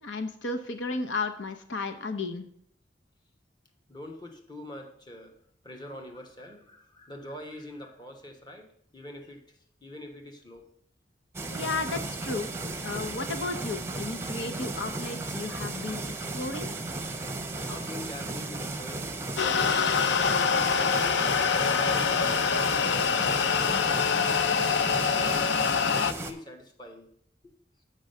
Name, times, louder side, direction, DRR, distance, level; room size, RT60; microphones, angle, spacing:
voice 1, 0.0-2.4 11.5-12.5 12.8-16.7, left 3 dB, 85° left, 7 dB, 0.8 m, -34 dB
voice 2, 3.9-5.4 5.6-10.7 17.6-20.0 20.5-24.4 25.1-27.1 27.4-27.5, left 1 dB, 25° left, 3 dB, 1.2 m, -44 dB
sound 1, 11.3-26.3, right 2 dB, 15° right, 0.7 m, -35 dB
ambinet hell, 19.4-26.1, left 6 dB, 65° left, 0.4 m, -25 dB
7.4 x 5.4 x 6.5 m, 0.64 s
head